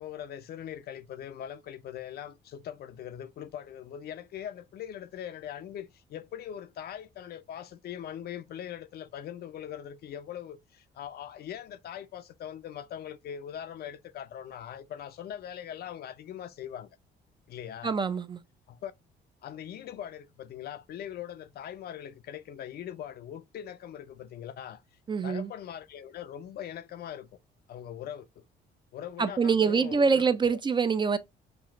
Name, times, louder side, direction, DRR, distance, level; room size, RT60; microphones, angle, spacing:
voice 1, 0.0-16.9 17.5-17.9 18.7-18.9 19.4-24.8 25.2-27.3 27.7-28.4 28.9-30.3 30.5-30.6, left 10 dB, 55° left, 0.5 m, -41 dB
voice 2, 17.8-18.4 25.1-25.5 29.2-31.2, right 5 dB, 25° right, 0.4 m, -25 dB
6.0 x 2.4 x 2.4 m
cardioid pair, 125°, 19 cm